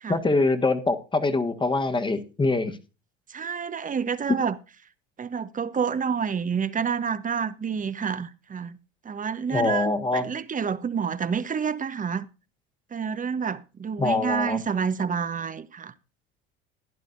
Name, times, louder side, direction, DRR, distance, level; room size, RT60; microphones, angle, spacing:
voice 1, 0.1-2.8 9.5-10.3 14.0-14.6, left 3 dB, 15° left, 1.6 m, -24 dB
voice 2, 3.3-4.6 5.2-8.8 9.0-12.3 12.9-15.9, right 6 dB, 25° right, 1.0 m, -28 dB
15.5 x 10.5 x 2.6 m
hypercardioid pair, 80°, 30 cm